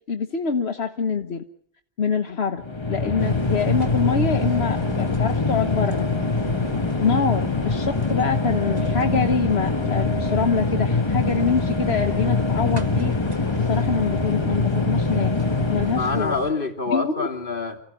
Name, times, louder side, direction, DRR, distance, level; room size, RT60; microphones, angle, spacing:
voice 1, 0.1-1.4 2.0-6.1 7.0-13.1 13.7-15.3 15.7-16.3 16.9-17.3, left 5 dB, 80° left, 6 dB, 1.5 m, -25 dB
sound 1, 2.6-16.5, left 3 dB, 25° left, 1.3 m, -24 dB
sound 2, 3.2-16.5, right 4 dB, 40° right, 2.1 m, -37 dB
voice 2, 15.9-17.8, left 4 dB, 55° left, 2 dB, 3.3 m, -27 dB
28.0 x 16.0 x 9.1 m, 0.66 s
omnidirectional pair, 1.1 m